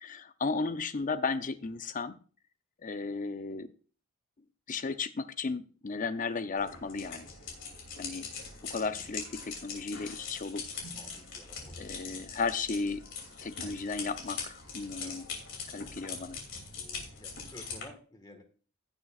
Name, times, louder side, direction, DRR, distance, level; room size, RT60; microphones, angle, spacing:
voice 1, 0.0-2.2 2.8-3.7 4.7-7.3 8.0-8.3 8.7-10.6 11.8-13.1 13.4-15.3 15.7-16.4, left 4 dB, 35° left, 11 dB, 0.6 m, -34 dB
sound 1, 6.6-17.8, left 5 dB, 55° left, 2.8 m, -42 dB
voice 2, 10.9-11.9 15.0-15.4 16.8-18.4, left 1 dB, 20° left, 5 dB, 1.5 m, -53 dB
16.0 x 6.7 x 2.4 m, 0.39 s
head